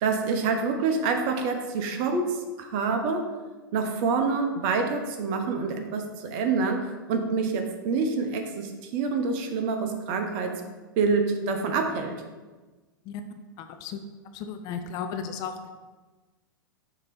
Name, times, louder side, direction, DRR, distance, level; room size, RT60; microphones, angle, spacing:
voice 1, 0.0-3.3 3.7-10.6 11.0-12.1, right 4 dB, 40° right, 5 dB, 0.8 m, -27 dB
voice 2, 13.6-14.0 14.3-15.5, left 7 dB, 35° left, 7 dB, 0.4 m, -34 dB
6.6 x 2.9 x 5.0 m, 1.3 s
figure-of-eight pair, 100°, 12 cm